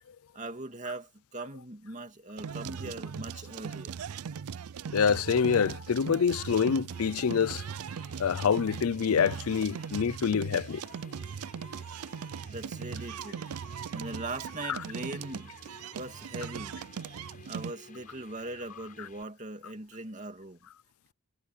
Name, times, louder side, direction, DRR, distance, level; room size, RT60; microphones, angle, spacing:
voice 1, 0.3-4.0 12.5-13.5 13.9-15.5 15.9-16.8 17.5-20.6, right 2 dB, 35° right, 2.7 m, -40 dB
sound 1, 2.4-17.7, right 7 dB, 90° right, 0.5 m, -39 dB
voice 2, 4.9-7.6 8.2-10.8 14.7-14.8, left 6 dB, 80° left, 0.5 m, -26 dB
sound 2, 6.9-19.2, left 3 dB, 35° left, 6.7 m, -55 dB
head